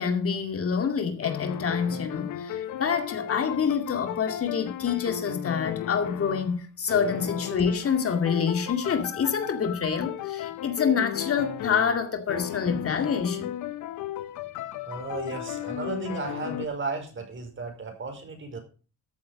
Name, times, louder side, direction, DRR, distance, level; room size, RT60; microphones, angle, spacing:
voice 1, 0.0-13.5, left 6 dB, 50° left, 2.2 m, -27 dB
sound 1, 1.2-6.6 6.9-16.7, left 12 dB, 80° left, 1.1 m, -35 dB
voice 2, 14.8-18.6, right 4 dB, 40° right, 5.1 m, -34 dB
14.0 x 7.9 x 5.1 m
cardioid pair, 90°, 30 cm